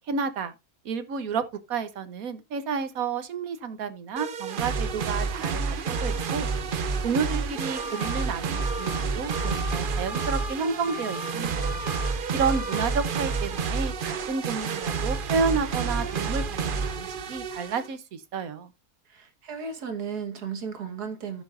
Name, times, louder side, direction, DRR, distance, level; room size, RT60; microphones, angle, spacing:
voice 1, 0.1-0.5 0.8-1.4 1.7-6.5 7.0-11.8 12.3-18.7, right 5 dB, 65° right, 1.4 m, -30 dB
sound 1, 4.2-17.9, right 5 dB, 45° right, 0.7 m, -29 dB
sound 2, 7.8-8.2 8.5-9.0 9.3-9.8 10.1-10.5 10.8-11.3 11.6-12.1 12.4-12.9, left 3 dB, 30° left, 2.0 m, -38 dB
voice 2, 19.1-21.4, right 6 dB, 85° right, 2.0 m, -35 dB
14.5 x 7.0 x 2.5 m
omnidirectional pair, 1.6 m